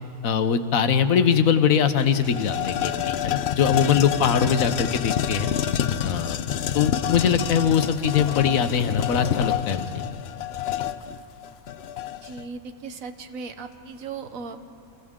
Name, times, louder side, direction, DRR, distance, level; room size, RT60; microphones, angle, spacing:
voice 1, 0.2-5.5 6.0-6.4 6.7-9.9, left 7 dB, 90° left, 10 dB, 1.3 m, -22 dB
sound 1, 1.3-1.4 1.7-12.4, left 10 dB, 60° left, 0.8 m, -28 dB
voice 2, 12.2-14.6, right 5 dB, 90° right, 9 dB, 1.4 m, -37 dB
29.5 x 25.0 x 3.7 m, 2.5 s
omnidirectional pair, 1.4 m